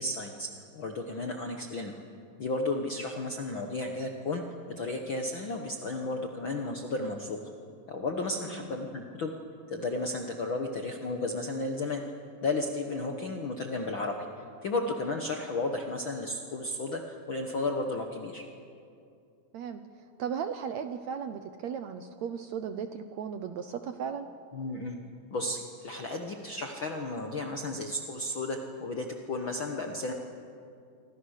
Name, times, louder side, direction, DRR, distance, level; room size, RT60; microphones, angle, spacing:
voice 1, 0.0-2.0 2.4-4.4 4.8-7.4 7.9-9.3 9.7-12.0 12.4-14.2 14.6-18.4 24.5-25.0 25.3-30.1, left 2 dB, 60° left, 3 dB, 1.3 m, -33 dB
voice 2, 20.2-24.3, right 7 dB, 70° right, 8 dB, 1.8 m, -36 dB
26.5 x 26.0 x 6.6 m, 2.5 s
omnidirectional pair, 4.1 m